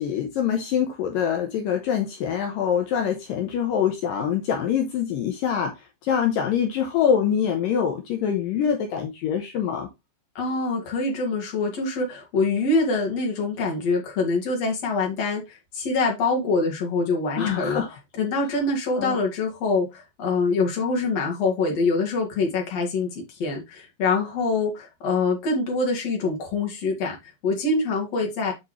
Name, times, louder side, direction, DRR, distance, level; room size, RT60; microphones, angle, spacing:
voice 1, 0.0-5.7 6.0-9.9 17.3-17.9 19.0-19.2, left 8 dB, 75° left, 2.2 m, -24 dB
voice 2, 10.4-17.8 18.1-28.5, left 3 dB, 45° left, 2.5 m, -25 dB
8.1 x 5.1 x 3.1 m
omnidirectional pair, 5.0 m